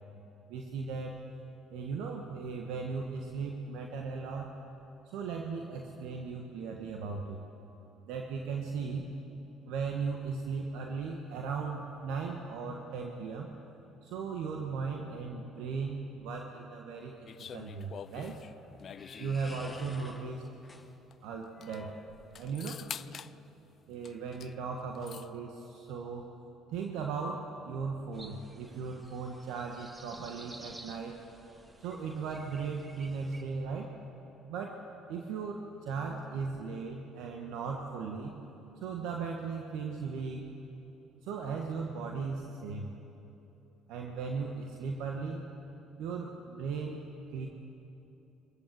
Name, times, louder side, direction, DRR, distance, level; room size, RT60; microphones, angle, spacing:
voice 1, 0.5-1.1 1.7-4.5 5.1-7.4 8.1-9.1 9.7-13.5 14.0-17.1 17.4-18.3 19.2-20.4 21.2-21.9 22.4-22.8 23.9-26.3 26.7-31.2 31.8-33.9 34.5-34.8 35.1-38.3 38.8-40.4 41.2-42.9 43.9-45.4 46.0-47.0 47.3-47.5, right 5 dB, 70° right, 1 dB, 1.5 m, -37 dB
sound 1, 17.3-20.0 21.1-21.2 21.4-21.8 22.3-23.3 24.0-24.5 24.8-25.3, left 8 dB, 50° left, 0.5 m, -46 dB
sound 2, 17.9-22.7, left 3 dB, 20° left, 1.7 m, -53 dB
sound 3, 28.1-33.4, right 2 dB, 20° right, 2.0 m, -53 dB
24.0 x 14.0 x 7.8 m, 3.0 s
hypercardioid pair, 55°, 0 cm